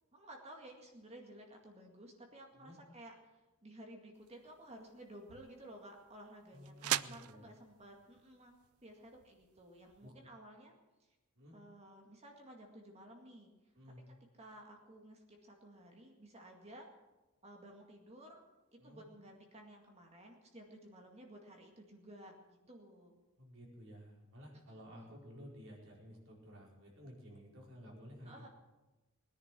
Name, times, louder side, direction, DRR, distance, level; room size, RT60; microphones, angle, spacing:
voice 1, 0.1-8.5 8.8-10.7 11.0-11.1 11.5-13.5 14.4-16.9 17.4-18.4 18.7-23.1 24.7-25.1 28.2-28.5, right 1 dB, 30° right, 1 dB, 2.1 m, -55 dB
sound 1, 4.1-10.1, right 13 dB, 75° right, 0.5 m, -44 dB
voice 2, 6.5-7.5 10.0-10.1 11.3-11.5 13.7-14.0 18.8-19.0 23.4-28.5, equal, 60° right, -2 dB, 4.8 m, -53 dB
20.5 x 10.5 x 6.1 m, 1.1 s
head